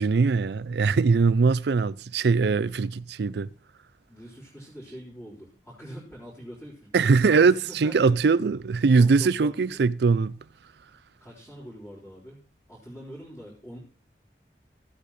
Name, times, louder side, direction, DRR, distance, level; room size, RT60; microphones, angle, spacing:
voice 1, 0.0-3.5 6.9-10.4, right 4 dB, 70° right, 0.4 m, -21 dB
voice 2, 4.1-8.3 9.0-9.8 11.2-13.8, equal, 15° left, 3.9 m, -44 dB
15.0 x 8.3 x 4.2 m
head